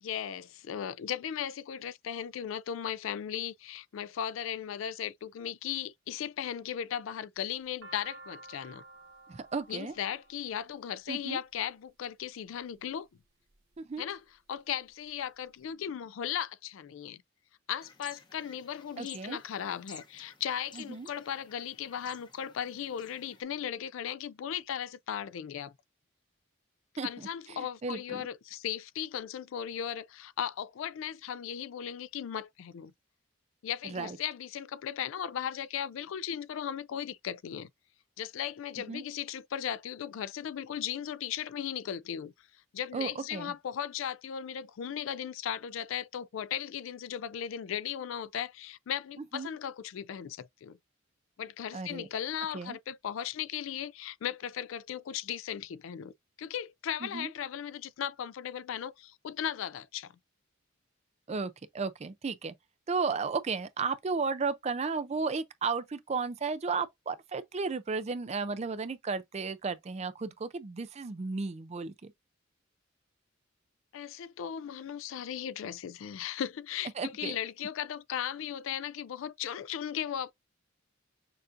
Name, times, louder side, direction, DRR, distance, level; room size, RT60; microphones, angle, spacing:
voice 1, 0.0-8.8 9.7-13.1 14.0-17.2 17.7-25.7 27.0-32.9 33.6-37.7 38.2-42.3 42.7-50.8 51.4-56.1 56.4-60.1 73.9-80.3, left 9 dB, 70° left, 0.3 m, -37 dB
sound 1, 7.4-11.6 12.4-12.9 13.5-14.2 14.5-14.6 14.8-15.6, right 2 dB, 70° right, 0.9 m, -52 dB
voice 2, 9.3-9.9 11.1-11.4 13.8-14.0 19.0-19.4 20.8-21.1 27.0-28.3 33.8-34.2 38.9-39.0 42.9-43.5 49.3-49.5 51.7-52.1 52.5-52.8 57.0-57.3 61.3-62.5 62.9-72.1 77.0-77.4, right 4 dB, 30° right, 0.4 m, -34 dB
sound 2, 17.8-23.4, left 5 dB, 20° left, 0.7 m, -54 dB
6.7 x 2.5 x 2.5 m
head